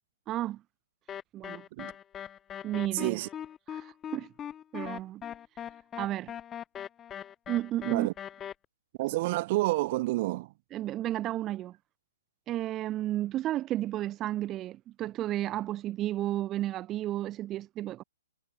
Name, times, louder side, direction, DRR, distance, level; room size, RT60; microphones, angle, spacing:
voice 1, 0.3-0.6 1.3-1.6 2.6-3.2 3.7-4.3 4.7-5.2 6.0-6.3 7.5-8.1 10.7-11.8 12.5-18.0, right 14 dB, 20° right, 4.1 m, -32 dB
sound 1, 1.1-8.5, left 9 dB, 15° left, 2.6 m, -40 dB
voice 2, 2.9-3.3 7.8-8.1 9.0-10.5, right 19 dB, 40° right, 5.8 m, -29 dB
hypercardioid pair, 135°, 0 cm